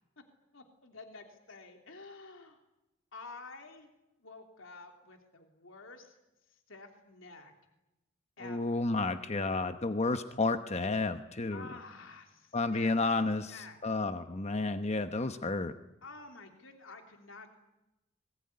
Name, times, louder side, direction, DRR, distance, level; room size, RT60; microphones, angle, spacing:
voice 1, 0.5-2.6 3.1-3.9 4.2-6.1 6.5-7.5 8.4-8.8 11.5-12.9 13.4-13.8 16.0-17.5, left 3 dB, 75° left, 4 dB, 3.2 m, -50 dB
voice 2, 8.4-11.7 12.5-15.7, left 3 dB, 35° left, 9 dB, 1.0 m, -31 dB
25.5 x 22.0 x 9.7 m, 0.98 s
head